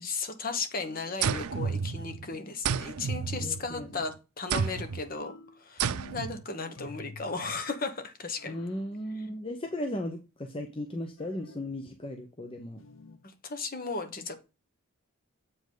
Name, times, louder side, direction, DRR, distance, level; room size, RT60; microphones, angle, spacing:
voice 1, 0.0-8.6 9.2-9.3 13.2-14.4, left 4 dB, 40° left, 8 dB, 1.1 m, -35 dB
sound 1, 0.8-1.3 2.0-2.5 5.2-6.4 6.8-7.4 8.4-8.9 11.2-11.7 12.8-13.3, left 3 dB, 65° left, 0.7 m, -50 dB
sound 2, 1.2-2.3 2.6-3.9 4.5-5.0 5.8-6.4, right 6 dB, 90° right, 0.5 m, -31 dB
voice 2, 3.4-4.0 8.5-12.8, left 1 dB, 25° left, 4 dB, 0.7 m, -36 dB
7.8 x 5.2 x 3.9 m, 0.29 s
head